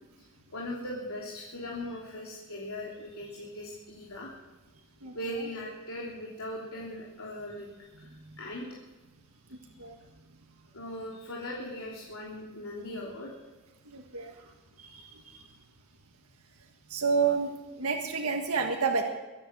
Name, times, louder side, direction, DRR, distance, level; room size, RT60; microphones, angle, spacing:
voice 1, 0.5-4.3 5.1-7.7 7.9-8.7 10.7-13.4, left 1 dB, 85° left, -4 dB, 3.2 m, -39 dB
voice 2, 8.1-8.4 9.8-10.0 13.8-14.3 14.8-15.4 16.9-19.0, right 5 dB, 85° right, 2 dB, 1.7 m, -30 dB
23.0 x 9.9 x 6.3 m, 1.2 s
head